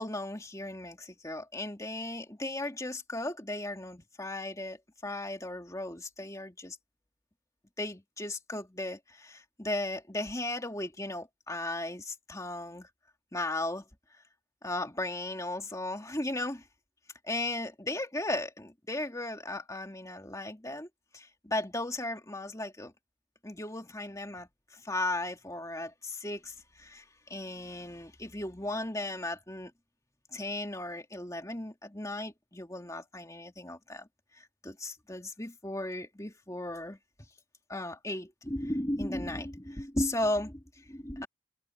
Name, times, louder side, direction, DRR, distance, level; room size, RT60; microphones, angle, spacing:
voice 1, 0.0-6.8 7.8-12.9 13.3-13.8 14.6-16.6 17.3-20.9 21.1-22.9 23.4-29.7 30.3-34.1 34.3-37.0 37.7-41.3, left 1 dB, 15° left, 2.7 m, -36 dB
head